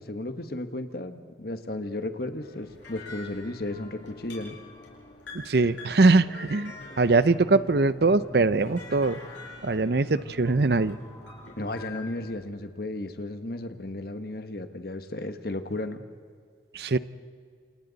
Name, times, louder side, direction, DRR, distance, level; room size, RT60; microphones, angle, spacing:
voice 1, 0.0-4.5 11.6-16.0, left 1 dB, 55° left, 8 dB, 1.3 m, -34 dB
sound 1, 2.4-12.3, left 3 dB, 90° left, 6.5 m, -46 dB
voice 2, 5.3-9.2 9.6-11.0 16.7-17.0, right 3 dB, 60° right, 15 dB, 0.6 m, -22 dB
sound 2, 6.5-11.8, equal, 10° left, 2.4 m, -47 dB
28.5 x 28.0 x 4.1 m, 2.1 s
head